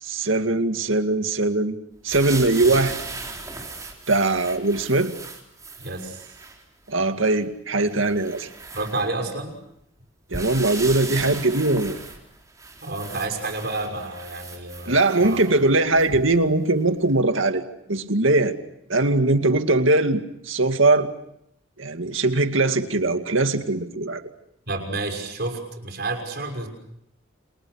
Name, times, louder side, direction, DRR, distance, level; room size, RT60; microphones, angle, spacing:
voice 1, 0.0-1.8 2.0-3.0 4.1-5.1 6.9-8.5 10.3-11.9 14.9-17.6 17.9-18.6 18.9-21.1 21.8-24.2, right 2 dB, 75° right, 7 dB, 2.2 m, -21 dB
sound 1, 2.1-6.6 7.2-7.3 7.9-9.5 10.3-16.5 17.1-17.2, right 3 dB, 15° right, 4.4 m, -37 dB
voice 2, 5.8-6.4 8.7-9.6 12.8-15.4 24.7-26.7, right 2 dB, 55° right, 4 dB, 6.3 m, -30 dB
30.0 x 28.5 x 6.4 m, 0.77 s
head